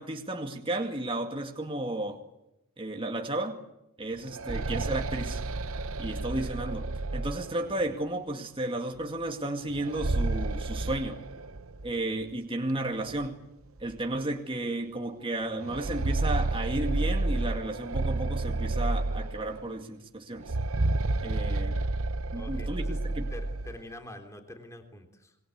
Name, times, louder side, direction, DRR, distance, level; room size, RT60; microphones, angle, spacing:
voice 1, 0.0-2.2 2.8-3.6 4.0-5.4 6.0-11.2 11.8-13.4 13.8-20.6 21.2-21.8 22.3-23.3, right 1 dB, 25° right, 2.2 m, -33 dB
sound 1, 4.1-7.9 9.7-11.9 12.2-12.3 13.2-13.3 13.8-13.9 15.5-19.7 20.4-23.8, right 2 dB, 65° right, 0.9 m, -30 dB
voice 2, 22.3-23.0 23.3-25.4, left 1 dB, 15° left, 3.4 m, -46 dB
26.5 x 22.0 x 8.2 m
head